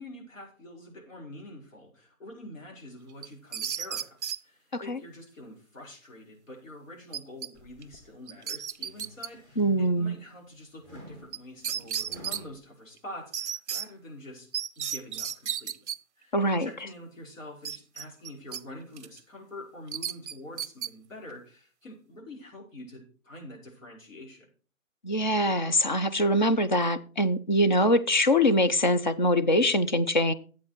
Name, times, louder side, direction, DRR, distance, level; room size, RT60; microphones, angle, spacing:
voice 1, 0.0-14.5 14.8-15.7 16.2-24.5, left 1 dB, 65° left, 0 dB, 5.6 m, -46 dB
sound 1, 3.2-4.4 7.1-7.5 7.8-7.9 8.3-9.3 11.3-11.4 11.6-12.4 13.3-13.9 14.5-16.0 17.6-18.6 19.0-19.2 19.9-20.9, right 9 dB, 55° right, 0.6 m, -33 dB
sound 2, 7.5-8.1 8.6-10.2 10.8-12.6, left 1 dB, 20° left, 2.0 m, -49 dB
voice 2, 9.6-10.1 16.3-16.7 25.0-30.3, equal, 35° left, 11 dB, 0.5 m, -23 dB
11.5 x 8.4 x 4.4 m, 0.40 s
hypercardioid pair, 170°, 41 cm